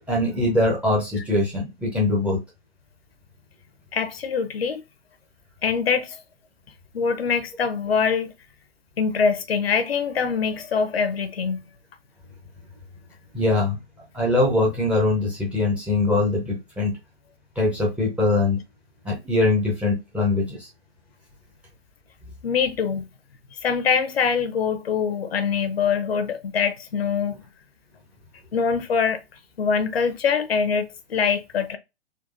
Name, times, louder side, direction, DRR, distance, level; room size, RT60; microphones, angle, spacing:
voice 1, 0.1-2.4 13.3-13.8 14.1-16.9 17.6-18.6 19.0-20.7, left 2 dB, 5° right, 0.6 m, -22 dB
voice 2, 3.9-4.8 5.6-6.2 6.9-8.3 9.0-11.6 22.4-23.1 23.6-27.4 28.5-29.2 29.6-31.8, left 6 dB, 65° left, 0.7 m, -23 dB
3.9 x 2.4 x 2.4 m
figure-of-eight pair, 120°, 33 cm